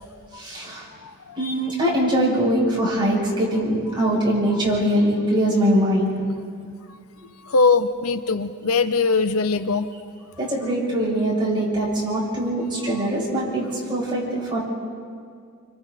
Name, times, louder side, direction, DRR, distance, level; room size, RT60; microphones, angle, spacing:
voice 1, 0.3-0.9 1.4-6.2 10.4-14.6, right 1 dB, 20° right, -6 dB, 7.6 m, -22 dB
voice 2, 1.0-1.4 7.4-9.9 12.9-13.0, left 4 dB, 70° left, 10 dB, 0.8 m, -21 dB
29.5 x 26.0 x 4.2 m, 2.2 s
head